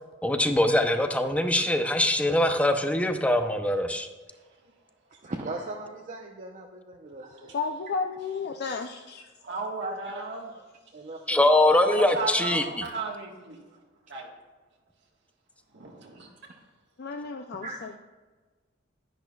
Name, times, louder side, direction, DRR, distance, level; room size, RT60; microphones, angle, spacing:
voice 1, 0.2-4.1 11.3-12.6, left 1 dB, 5° left, 7 dB, 0.6 m, -23 dB
voice 2, 5.2-7.6 9.8-10.0 10.9-11.5 17.6-17.8, right 2 dB, 40° right, 1 dB, 0.7 m, -38 dB
voice 3, 7.5-9.3 17.0-18.0, left 4 dB, 55° left, 5 dB, 0.4 m, -33 dB
voice 4, 9.4-10.5 11.8-13.6 14.1-14.3 15.7-16.3, right 3 dB, 65° right, 0 dB, 1.4 m, -34 dB
10.5 x 10.0 x 2.3 m, 1.3 s
head